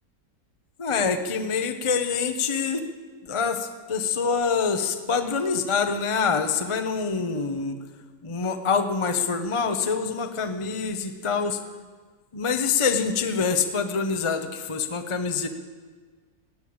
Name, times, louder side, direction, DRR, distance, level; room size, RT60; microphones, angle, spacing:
voice 1, 0.8-2.8 3.2-7.8 8.2-11.6 12.3-15.5, left 5 dB, 25° left, 7 dB, 0.7 m, -25 dB
15.5 x 9.2 x 8.7 m, 1.5 s
omnidirectional pair, 1.9 m